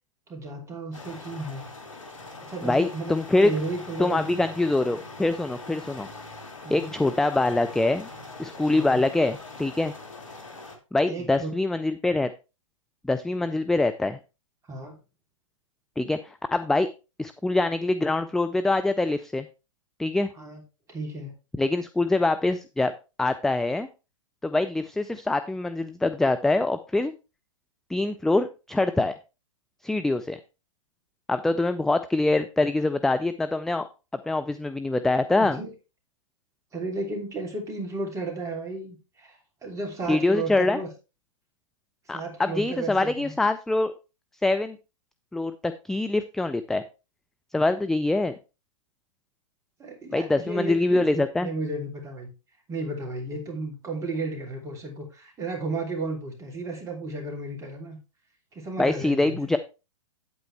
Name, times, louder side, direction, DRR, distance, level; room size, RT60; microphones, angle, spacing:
voice 1, 0.3-1.7 2.4-3.2 3.4-4.4 6.6-6.9 8.7-9.0 11.1-11.5 14.7-15.0 20.3-20.6 20.9-21.3 35.4-35.7 36.7-40.9 42.1-43.3 49.8-52.3 52.7-58.0 58.5-59.5, right 2 dB, 20° right, 2 dB, 3.1 m, -34 dB
sound 1, 0.9-10.8, left 2 dB, 75° left, 2.3 m, -42 dB
voice 2, 2.6-3.5 4.0-6.1 6.7-8.1 8.4-9.9 10.9-12.3 13.0-14.2 16.0-16.9 17.2-19.5 20.0-20.3 21.6-22.9 23.2-23.9 24.4-27.1 27.9-29.1 29.8-30.4 31.3-33.9 34.3-35.6 40.1-40.8 42.1-43.9 44.4-44.8 45.3-46.8 47.5-48.3 50.1-51.5 58.8-59.6, left 2 dB, ahead, 10 dB, 0.3 m, -24 dB
8.8 x 8.4 x 3.2 m, 0.30 s
hypercardioid pair, 115°, 17 cm